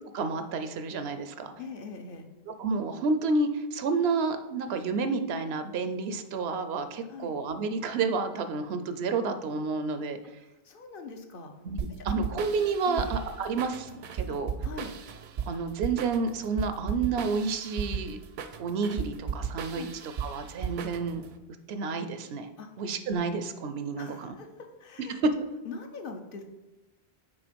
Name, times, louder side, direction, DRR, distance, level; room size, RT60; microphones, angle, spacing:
voice 1, 0.1-1.5 2.6-10.2 11.6-14.5 15.5-18.2 18.6-19.8 20.2-21.2 21.7-22.5 22.8-24.3, right 4 dB, 85° right, 9 dB, 0.9 m, -30 dB
voice 2, 1.6-2.3 7.1-7.3 10.4-11.5 12.0-12.4 12.8-13.1 14.3-14.9 19.7-19.9 22.6-22.7 24.0-25.1 25.6-26.4, left 4 dB, 65° left, 5 dB, 0.9 m, -42 dB
sound 1, 11.8-21.3, right 7 dB, 60° right, 0.6 m, -36 dB
6.1 x 4.4 x 5.1 m, 1.0 s
omnidirectional pair, 1.0 m